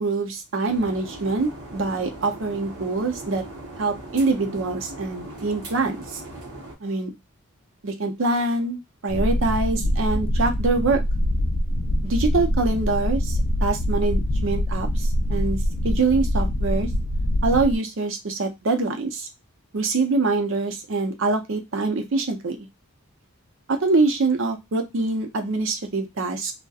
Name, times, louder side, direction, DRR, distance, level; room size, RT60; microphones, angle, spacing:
voice 1, 0.0-3.4 3.8-6.2 6.8-7.1 7.8-11.0 12.0-15.6 15.8-16.9 17.4-19.3 19.7-22.7 23.7-26.5, right 3 dB, 60° right, 5 dB, 0.5 m, -24 dB
sound 1, 0.6-6.8, right 2 dB, 85° right, 0.8 m, -39 dB
sound 2, 9.1-17.8, equal, 40° left, 0.3 m, -24 dB
2.6 x 2.1 x 2.3 m, 0.20 s
head